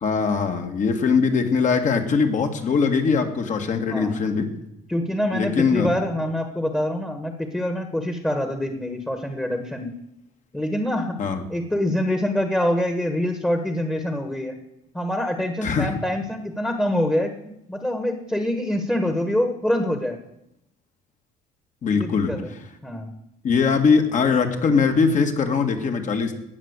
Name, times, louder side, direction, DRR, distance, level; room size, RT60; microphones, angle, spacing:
voice 1, 0.0-4.5 5.3-5.9 11.2-11.4 15.6-15.9 21.8-22.3 23.4-26.3, left 5 dB, 45° left, 5 dB, 2.0 m, -21 dB
voice 2, 4.9-9.9 10.5-11.2 11.5-14.6 14.9-20.2 21.9-22.5 22.8-23.1, left 1 dB, 5° left, 5 dB, 1.5 m, -25 dB
17.5 x 6.1 x 8.2 m, 0.83 s
cardioid pair, 110°, 17 cm